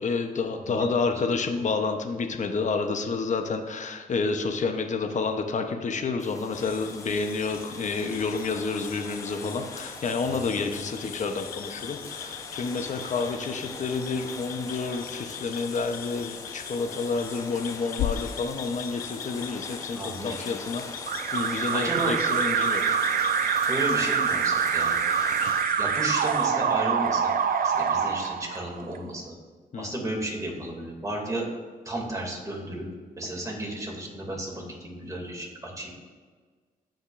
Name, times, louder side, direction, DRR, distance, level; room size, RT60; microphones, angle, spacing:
voice 1, 0.0-20.8 21.3-22.8 23.2-23.3 29.7-29.9, left 4 dB, 55° left, 5 dB, 0.9 m, -29 dB
voice 2, 0.5-1.2 19.9-20.7 21.7-22.1 23.7-24.9 25.8-27.2 27.6-29.4 29.8-31.5 31.8-32.9 33.2-35.9, right 1 dB, 20° right, -1 dB, 2.6 m, -33 dB
sound 1, 6.2-25.6, left 2 dB, 20° left, 0.9 m, -43 dB
sound 2, 6.5-26.5, left 9 dB, 75° left, 0.5 m, -40 dB
Alarm, 21.1-29.0, right 7 dB, 70° right, 0.5 m, -25 dB
14.5 x 5.2 x 2.6 m, 1.5 s
cardioid pair, 75°, 15 cm